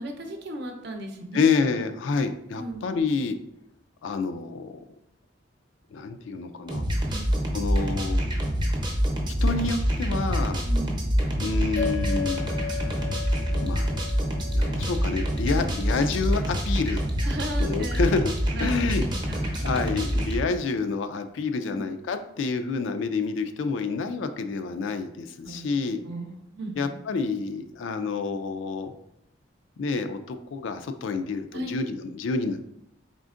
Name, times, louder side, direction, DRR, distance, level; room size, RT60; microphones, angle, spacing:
voice 1, 0.0-1.5 2.6-3.0 7.1-7.2 10.6-11.0 15.5-15.7 17.2-18.0 18.5-19.5 21.7-21.9 25.4-27.0 31.5-31.8, right 1 dB, 60° right, 4 dB, 0.6 m, -36 dB
voice 2, 1.3-3.4 4.0-4.8 5.9-6.8 7.5-8.2 9.4-10.6 11.4-12.4 13.6-13.9 14.5-17.0 17.6-18.3 18.6-19.1 19.5-26.0 26.8-28.9 29.8-32.6, left 4 dB, 70° left, 8 dB, 0.3 m, -28 dB
sound 1, 6.7-20.4, equal, 25° right, 0.7 m, -26 dB
sound 2, 11.8-16.4, left 7 dB, 90° left, 0.8 m, -37 dB
4.2 x 3.7 x 2.4 m, 0.77 s
head